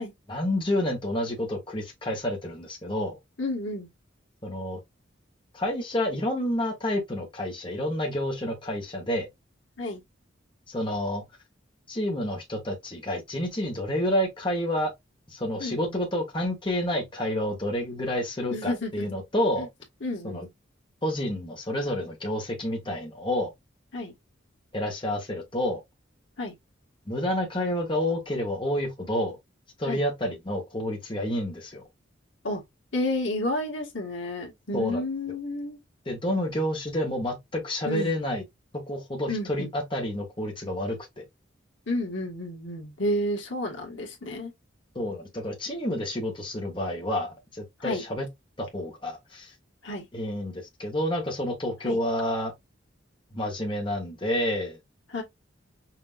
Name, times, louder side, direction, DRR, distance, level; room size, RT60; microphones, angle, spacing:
voice 1, 0.3-3.1 4.4-4.8 5.5-9.3 10.7-11.2 11.9-14.9 15.3-19.7 20.2-20.5 21.0-23.5 24.7-25.8 27.0-29.4 29.8-31.8 34.7-35.0 36.0-38.4 38.9-41.2 44.9-48.3 48.6-49.5 50.1-52.5 53.3-54.8, left 1 dB, 25° left, 1.4 m, -29 dB
voice 2, 3.4-3.9 9.8-10.0 15.6-16.0 18.5-19.1 19.6-19.7 20.0-20.5 23.9-24.1 26.4-26.5 29.9-30.0 32.4-32.6 32.9-35.8 37.8-38.1 39.3-39.7 41.9-44.5 47.8-48.0 49.8-50.1 51.8-52.0 55.1-55.2, left 1 dB, 75° left, 1.8 m, -31 dB
5.8 x 3.0 x 2.5 m
head